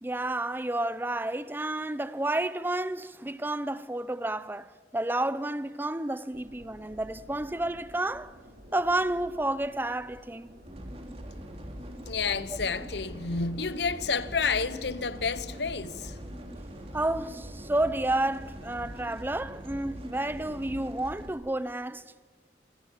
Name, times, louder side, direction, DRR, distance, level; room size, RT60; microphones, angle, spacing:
voice 1, 0.0-8.3 8.7-10.6 12.5-12.6 16.9-22.1, right 1 dB, 10° right, 0.7 m, -30 dB
sound 1, 6.3-17.1, equal, 55° right, 6.5 m, -52 dB
sound 2, 10.7-21.3, equal, 35° right, 3.4 m, -42 dB
voice 2, 12.1-16.2, left 5 dB, 80° left, 1.1 m, -30 dB
26.0 x 25.0 x 7.3 m
head